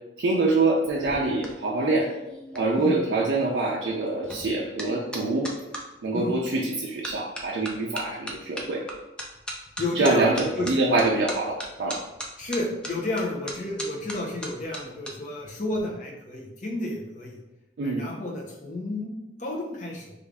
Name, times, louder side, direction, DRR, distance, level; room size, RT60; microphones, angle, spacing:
voice 1, 0.2-2.1 2.5-5.5 6.0-8.8 10.0-12.0 17.8-18.1, right 2 dB, 80° right, -3 dB, 0.4 m, -25 dB
sound 1, 0.8-5.8 6.5-6.7 7.0-15.1 15.4-15.8, equal, 5° left, 0.3 m, -38 dB
voice 2, 9.8-10.7 12.4-17.4 17.8-19.1 19.4-20.1, left 2 dB, 45° left, -1 dB, 0.6 m, -31 dB
3.2 x 2.5 x 3.4 m, 0.99 s
head